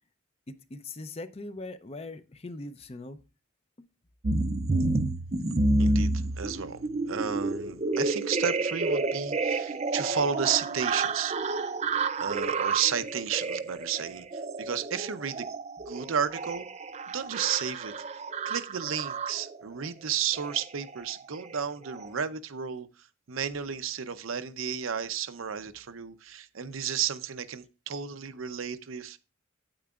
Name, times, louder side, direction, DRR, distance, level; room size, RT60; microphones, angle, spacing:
voice 1, 0.5-3.2, left 2 dB, 30° left, 0.5 m, -41 dB
sound 1, 4.2-19.6 20.4-20.6 20.9-21.1 21.4-21.6 21.9-22.1, right 2 dB, 30° right, 0.5 m, -30 dB
voice 2, 4.7-11.7 12.2-15.5 15.9-16.7 17.1-17.9 18.5-22.9 23.3-29.2, right 8 dB, 80° right, 0.7 m, -33 dB
8.8 x 8.6 x 2.4 m
head